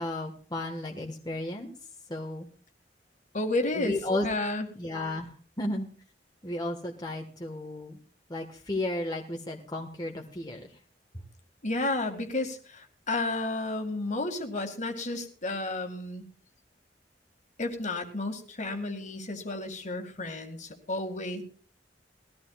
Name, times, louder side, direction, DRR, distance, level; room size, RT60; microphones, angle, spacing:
voice 1, 0.0-1.7 2.1-2.5 3.7-4.3 4.7-5.3 5.6-5.9 6.4-8.0 8.3-10.7, left 1 dB, 25° left, 0 dB, 1.5 m, -33 dB
voice 2, 3.3-4.7 11.6-16.2 17.6-21.4, left 2 dB, 45° left, 6 dB, 2.1 m, -32 dB
20.0 x 14.0 x 2.4 m, 0.41 s
head